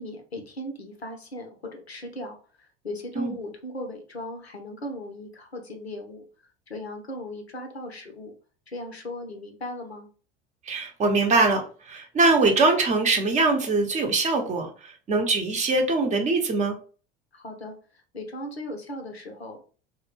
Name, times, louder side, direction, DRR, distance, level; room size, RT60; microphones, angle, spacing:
voice 1, 0.0-6.3 6.7-8.3 8.7-10.1 17.3-17.8 18.1-19.6, left 1 dB, 90° left, 4 dB, 0.6 m, -37 dB
voice 2, 10.7-11.6 11.9-14.7 15.1-16.8, right 3 dB, 25° right, 3 dB, 0.6 m, -22 dB
2.2 x 2.1 x 3.1 m, 0.39 s
figure-of-eight pair, 75°, 31 cm